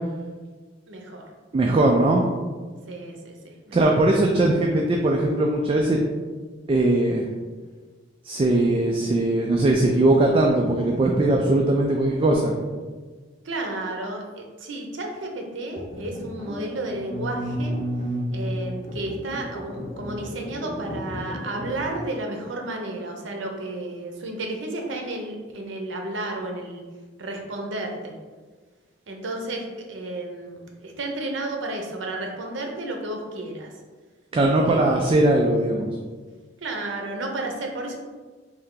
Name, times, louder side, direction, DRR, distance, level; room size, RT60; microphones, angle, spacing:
voice 1, 0.9-1.3 2.9-4.0 13.4-17.8 18.3-26.8 27.2-28.1 29.1-33.7 34.7-35.3 36.6-38.0, right 2 dB, 80° right, 2 dB, 0.7 m, -32 dB
voice 2, 1.5-2.2 3.7-6.0 6.7-7.2 8.2-12.5 34.3-35.9, right 2 dB, 30° right, 0 dB, 0.3 m, -20 dB
sound 1, 15.7-21.9, equal, 40° left, 0.5 m, -32 dB
3.3 x 2.7 x 3.7 m, 1.4 s
head